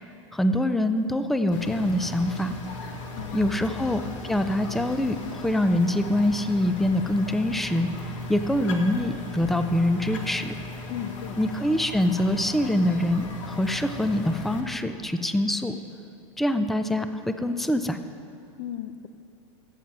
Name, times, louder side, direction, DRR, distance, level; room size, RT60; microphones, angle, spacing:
voice 1, 0.3-2.6 3.3-4.0 4.3-7.9 8.3-10.6 11.4-15.8 16.4-18.0, left 1 dB, ahead, 9 dB, 0.4 m, -24 dB
sound 1, 1.5-14.6, left 2 dB, 70° left, 1.4 m, -37 dB
voice 2, 3.2-3.9 10.9-11.4 18.6-19.1, left 11 dB, 50° left, 12 dB, 0.6 m, -36 dB
13.0 x 7.4 x 5.5 m, 2.5 s
supercardioid pair, 125°, 16 cm